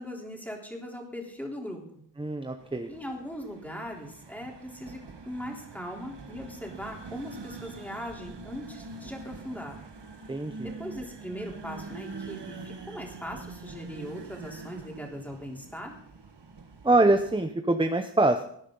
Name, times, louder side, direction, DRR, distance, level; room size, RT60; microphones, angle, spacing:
voice 1, 0.0-1.8 2.9-5.0 5.3-9.8 10.6-15.9, equal, 5° left, -1 dB, 3.5 m, -39 dB
voice 2, 2.2-2.9 10.3-10.7 16.8-18.4, right 2 dB, 10° right, 6 dB, 0.8 m, -24 dB
sound 1, 2.6-17.5, right 4 dB, 65° right, 1.6 m, -44 dB
18.0 x 10.5 x 3.9 m, 0.68 s
wide cardioid pair, 85°, 44 cm